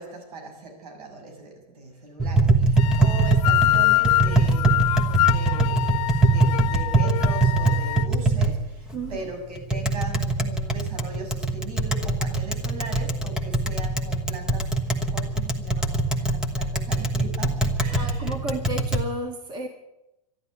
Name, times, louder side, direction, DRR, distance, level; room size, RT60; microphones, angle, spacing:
voice 1, 0.0-5.0 5.3-18.6, right 2 dB, 75° right, 4 dB, 6.8 m, -39 dB
Tap, 2.2-19.0, right 3 dB, 5° right, 1.2 m, -23 dB
sound 1, 2.8-8.1, left 18 dB, 55° left, 0.6 m, -24 dB
voice 2, 8.9-9.3 17.9-19.7, right 1 dB, 20° right, 5 dB, 1.7 m, -32 dB
13.0 x 11.0 x 9.8 m, 0.90 s
supercardioid pair, 160°, 20 cm